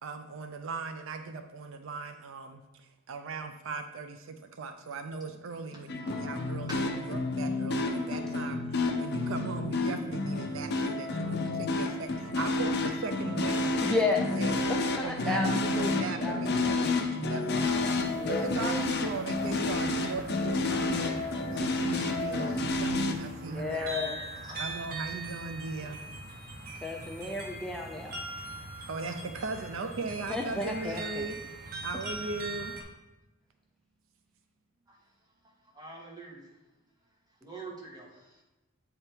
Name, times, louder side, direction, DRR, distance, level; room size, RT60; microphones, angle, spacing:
voice 1, 0.0-13.8 14.1-14.6 15.0-21.2 21.5-26.0 28.8-31.3 31.8-32.8, right 3 dB, 70° right, 7 dB, 0.5 m, -38 dB
sound 1, 5.9-23.2, left 2 dB, 55° left, 0.6 m, -30 dB
voice 2, 13.8-14.2 14.7-15.5 15.7-17.0 18.2-18.8 23.5-24.2 26.8-28.2 30.3-31.2, left 3 dB, 5° left, 0 dB, 0.5 m, -33 dB
sound 2, 17.6-32.8, right 2 dB, 45° right, 1.0 m, -42 dB
voice 3, 35.6-36.5 37.4-38.4, right 3 dB, 20° right, -2 dB, 1.4 m, -46 dB
8.5 x 3.4 x 4.5 m, 1.0 s
head